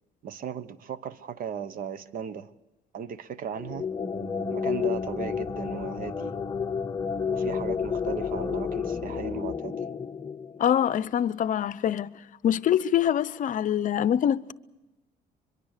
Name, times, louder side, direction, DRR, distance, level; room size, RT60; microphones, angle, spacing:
voice 1, 0.2-2.5 2.9-3.9 4.5-6.3 7.3-9.8, right 7 dB, 55° right, 1.1 m, -36 dB
sound 1, 3.5-11.0, left 6 dB, 25° left, 0.8 m, -31 dB
voice 2, 10.6-12.1 12.4-14.5, left 10 dB, 50° left, 0.7 m, -24 dB
23.0 x 23.0 x 6.6 m
cardioid pair, 110°, 17 cm